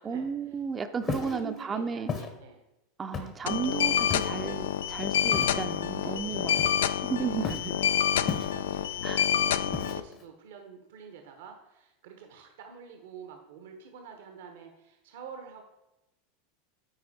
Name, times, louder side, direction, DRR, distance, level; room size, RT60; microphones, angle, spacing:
voice 1, 0.0-2.1 3.0-6.5 7.0-7.9 9.0-9.3, right 6 dB, 25° right, 8 dB, 0.5 m, -34 dB
Walk footsteps, 1.0-1.4 2.1-2.3 3.1-3.5 4.1-4.4 5.3-5.6 6.6-7.0 7.4-7.7 8.3-8.8 9.7-10.2, left 6 dB, 35° left, 0.9 m, -34 dB
voice 2, 1.1-2.6 3.1-3.3 6.0-7.1 8.1-15.6, right 7 dB, 75° right, 4 dB, 1.0 m, -47 dB
sound 1, 3.5-10.0, left 9 dB, 80° left, 0.3 m, -28 dB
9.4 x 4.3 x 4.2 m, 0.95 s
hypercardioid pair, 100°, 0 cm